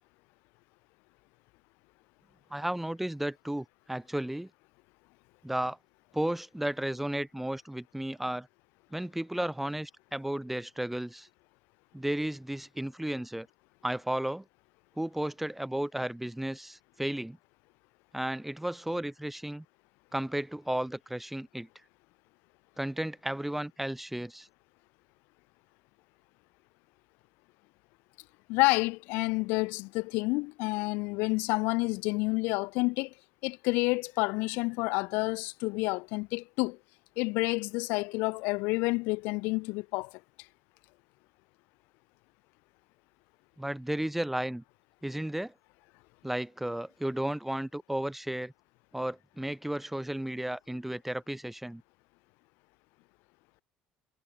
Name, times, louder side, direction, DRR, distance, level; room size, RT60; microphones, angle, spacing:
voice 1, 2.5-4.5 5.4-5.8 6.1-8.5 8.9-11.3 11.9-13.5 13.8-14.4 15.0-17.4 18.1-19.6 20.1-21.7 22.8-24.5 43.6-44.6 45.0-45.5 46.2-48.5 48.9-51.8, right 1 dB, 5° right, 1.3 m, -33 dB
voice 2, 28.5-33.1 33.4-36.8 37.2-40.1, left 27 dB, 80° left, 0.9 m, -29 dB
supercardioid pair, 80°, 3 cm